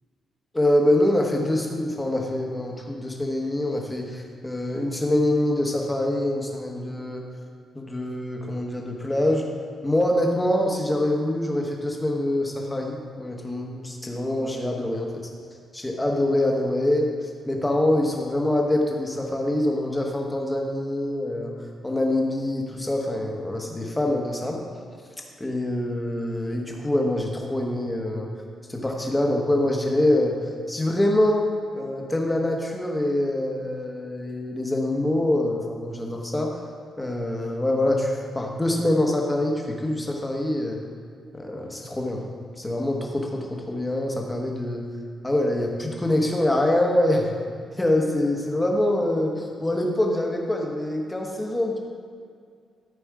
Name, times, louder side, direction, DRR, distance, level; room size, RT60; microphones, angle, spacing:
voice 1, 0.5-7.2 7.7-9.4 9.8-15.1 15.7-21.5 21.8-24.6 25.4-28.3 28.7-30.4 30.7-31.5 31.7-36.5 37.0-40.8 41.3-44.8 45.2-47.3 47.8-51.8, left 1 dB, 10° left, 0 dB, 1.1 m, -25 dB
13.0 x 5.2 x 4.8 m, 2.2 s
wide cardioid pair, 165°, 0 cm